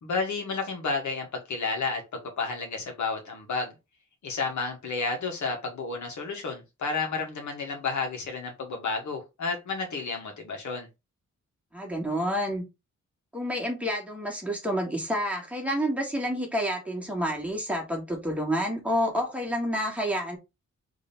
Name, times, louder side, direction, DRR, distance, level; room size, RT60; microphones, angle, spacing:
voice 1, 0.0-3.8 4.2-10.9, left 4 dB, 75° left, 1.7 m, -31 dB
voice 2, 11.7-12.6 13.3-20.4, equal, 5° right, 1.6 m, -29 dB
3.6 x 3.4 x 4.4 m
wide cardioid pair, 145°, 29 cm